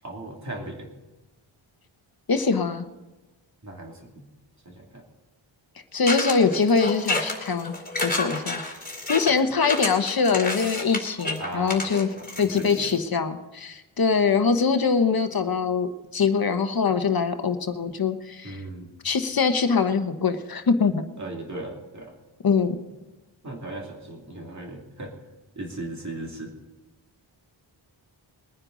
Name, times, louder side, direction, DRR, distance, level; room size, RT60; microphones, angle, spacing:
voice 1, 0.0-0.9 3.6-4.3 4.6-5.0 11.4-11.9 12.2-12.9 18.4-18.9 21.2-22.1 23.4-25.1 25.5-26.5, right 2 dB, 35° right, 0 dB, 2.8 m, -37 dB
voice 2, 2.3-2.9 5.9-7.7 8.0-8.6 9.1-12.1 12.4-18.6 19.0-21.0 22.4-22.8, left 5 dB, 50° left, 8 dB, 1.1 m, -23 dB
sound 1, 6.1-13.0, left 2 dB, 20° left, 3.0 m, -29 dB
22.0 x 9.8 x 4.0 m, 1.1 s
wide cardioid pair, 120°, 47 cm